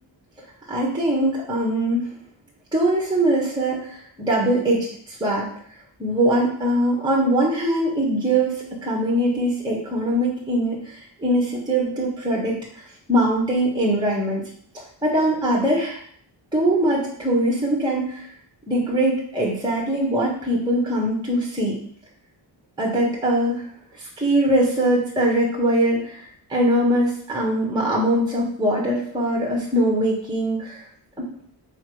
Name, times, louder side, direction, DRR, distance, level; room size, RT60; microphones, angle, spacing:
voice 1, 0.7-2.1 2.7-5.5 6.0-12.8 13.1-14.4 15.0-16.0 16.5-18.3 18.7-21.8 22.8-23.6 23.9-30.9 31.2-31.3, right 1 dB, 10° right, -3 dB, 1.6 m, -22 dB
6.2 x 4.6 x 5.0 m, 0.62 s
wide cardioid pair, 150°, 46 cm